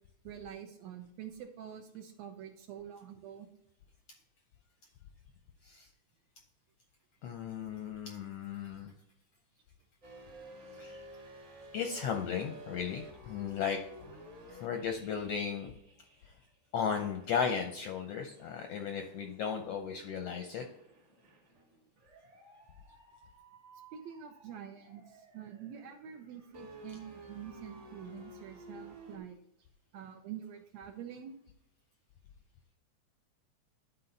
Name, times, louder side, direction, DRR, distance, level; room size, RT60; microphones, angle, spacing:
voice 1, 0.2-3.5 23.9-29.4 29.9-31.3, right 9 dB, 75° right, 5 dB, 1.7 m, -46 dB
voice 2, 7.2-8.9 10.8-11.0 11.7-13.8 14.5-15.7 16.2-16.3 16.7-20.6, left 7 dB, 75° left, 4 dB, 1.4 m, -35 dB
sound 1, 10.0-16.6 17.0-29.2, equal, 30° right, 1.4 m, -54 dB
11.0 x 4.2 x 3.9 m, 0.77 s
omnidirectional pair, 3.6 m